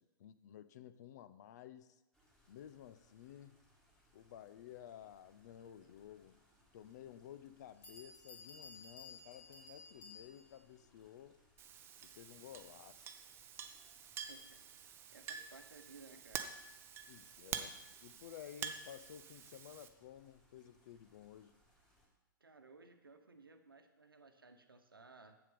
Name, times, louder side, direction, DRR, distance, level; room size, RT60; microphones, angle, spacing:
voice 1, 0.0-2.0 2.5-3.6 4.1-6.4 6.7-11.4 12.0-13.1 17.1-21.6, left 10 dB, 50° left, 14 dB, 0.6 m, -54 dB
sound 1, 2.1-22.1, equal, 5° left, 2.2 m, -72 dB
Bell, 6.7-6.8 7.5-7.6 7.8-10.6, left 4 dB, 35° left, 2.3 m, -55 dB
Chink clink, 11.6-19.9, right 7 dB, 20° right, 0.6 m, -48 dB
voice 2, 14.3-14.6 15.1-16.5 22.4-25.4, right 3 dB, 85° right, 7 dB, 1.0 m, -59 dB
8.0 x 7.2 x 5.2 m, 1.0 s
figure-of-eight pair, 115°, 12 cm